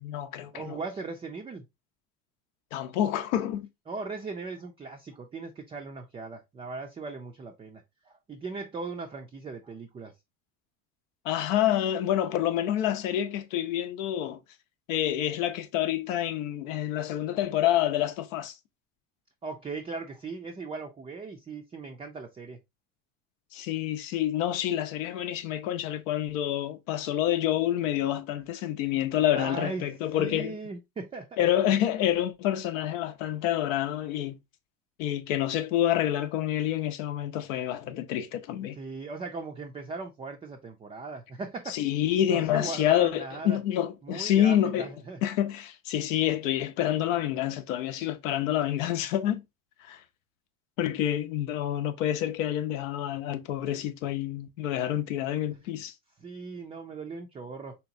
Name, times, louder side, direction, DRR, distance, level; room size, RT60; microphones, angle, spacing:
voice 1, 0.0-0.8 2.7-3.7 11.2-14.4 14.9-18.5 23.5-30.6 31.4-34.4 35.0-38.8 41.7-44.9 45.2-49.4 49.8-50.0 50.8-55.9, left 11 dB, 90° left, 0.6 m, -28 dB
voice 2, 0.5-1.6 3.9-10.1 19.4-22.6 23.5-23.7 29.3-29.9 30.1-31.4 38.8-41.8 42.3-43.6 44.0-45.2 56.2-57.8, right 4 dB, 15° right, 0.3 m, -38 dB
3.4 x 2.9 x 2.5 m
supercardioid pair, 105°, 37 cm